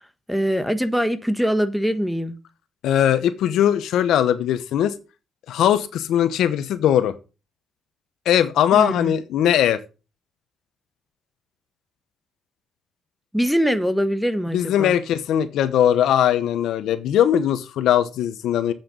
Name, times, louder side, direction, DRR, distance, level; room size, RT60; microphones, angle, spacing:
voice 1, 0.3-2.3 8.7-9.1 13.3-15.0, equal, ahead, 9 dB, 1.3 m, -22 dB
voice 2, 2.8-4.9 5.5-7.1 8.2-9.8 14.5-18.7, left 10 dB, 80° left, 12 dB, 0.9 m, -20 dB
8.1 x 6.6 x 5.2 m, 0.31 s
cardioid pair, 90°, 0 cm